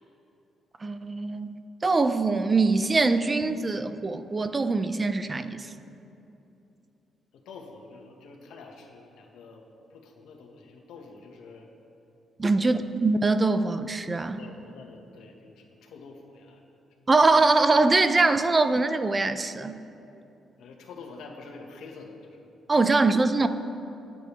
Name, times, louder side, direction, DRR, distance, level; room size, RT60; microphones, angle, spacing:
voice 1, 0.8-5.7 12.4-14.4 17.1-19.8 22.7-23.5, right 3 dB, 25° right, 10 dB, 0.6 m, -23 dB
voice 2, 7.3-9.6 9.9-11.7 12.6-12.9 14.4-16.6 17.0-17.1 20.6-22.5, left 4 dB, 90° left, 1 dB, 1.8 m, -47 dB
27.0 x 9.3 x 3.6 m, 2.8 s
cardioid pair, 110°, 0 cm